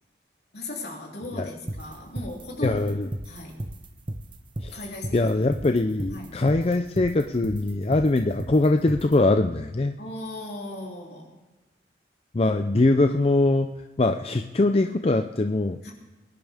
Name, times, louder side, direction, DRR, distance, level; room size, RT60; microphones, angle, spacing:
voice 1, 0.5-2.8 3.2-3.6 4.7-5.3 6.1-6.4 10.0-11.3 15.8-15.9, left 1 dB, 65° left, -1 dB, 3.2 m, -37 dB
sound 1, 1.7-9.2, right 1 dB, 30° right, 0.7 m, -34 dB
voice 2, 2.6-3.1 4.6-4.8 5.1-9.9 12.3-15.8, left 2 dB, 35° left, 7 dB, 0.5 m, -22 dB
22.5 x 10.5 x 3.6 m, 1.2 s
head